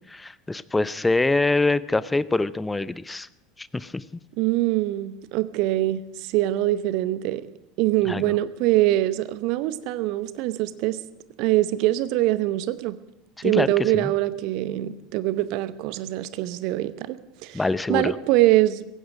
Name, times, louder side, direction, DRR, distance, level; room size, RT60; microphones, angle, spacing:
voice 1, 0.1-3.3 3.6-4.0 8.1-8.3 13.4-14.1 17.5-18.2, left 2 dB, 10° left, 17 dB, 0.6 m, -25 dB
voice 2, 4.4-7.5 7.8-11.0 11.4-13.0 13.4-17.6 17.9-18.9, right 16 dB, 50° right, 15 dB, 0.8 m, -23 dB
17.0 x 15.5 x 5.0 m, 0.87 s
figure-of-eight pair, 75°, 0 cm